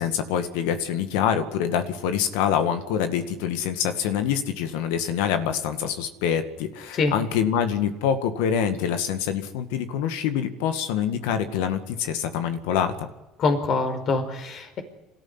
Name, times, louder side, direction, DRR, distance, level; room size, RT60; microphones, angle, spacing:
voice 1, 0.0-13.1, left 8 dB, 80° left, 8 dB, 2.0 m, -25 dB
voice 2, 13.4-14.8, left 3 dB, 55° left, 8 dB, 5.0 m, -24 dB
26.5 x 14.0 x 9.9 m, 1.1 s
hypercardioid pair, 75°, 0 cm